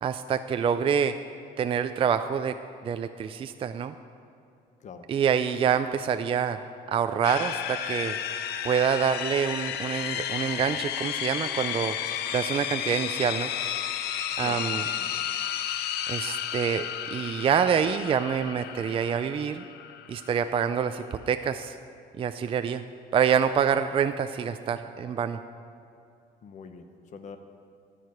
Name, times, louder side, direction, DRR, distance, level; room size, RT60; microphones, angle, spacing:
voice 1, 0.0-1.2 1.6-2.6 2.8-3.9 5.1-6.6 6.9-8.2 8.6-12.0 12.3-13.5 14.4-14.8 16.1-19.6 20.1-21.8 22.2-22.8 23.1-25.4, right 7 dB, 35° right, 9 dB, 0.4 m, -26 dB
sound 1, 7.2-21.3, left 10 dB, 75° left, 0.6 m, -33 dB
voice 2, 14.4-15.3 26.4-27.4, left 5 dB, 45° left, 7 dB, 0.9 m, -45 dB
14.0 x 4.9 x 9.2 m, 2.6 s
cardioid pair, 110°, 17 cm